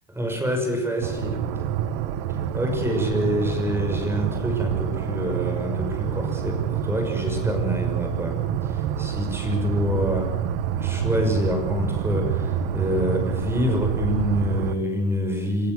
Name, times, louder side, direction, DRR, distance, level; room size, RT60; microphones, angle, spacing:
voice 1, 0.1-1.4 2.5-10.3 10.8-15.7, equal, 5° right, 4 dB, 6.1 m, -26 dB
sound 1, 1.0-14.7, right 9 dB, 60° right, 1.7 m, -27 dB
27.0 x 16.0 x 8.0 m, 0.90 s
supercardioid pair, 140°, 35 cm